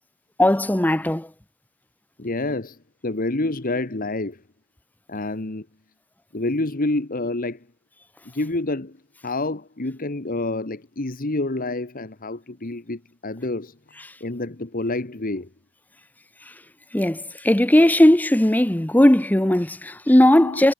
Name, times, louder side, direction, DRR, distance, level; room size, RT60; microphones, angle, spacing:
voice 1, 0.4-1.3 16.9-20.7, left 1 dB, 10° left, 0.7 m, -17 dB
voice 2, 2.2-4.4 5.1-5.7 6.3-7.7 8.2-9.0 9.2-13.8 14.2-15.5 20.4-20.6, left 2 dB, 40° left, 1.3 m, -28 dB
head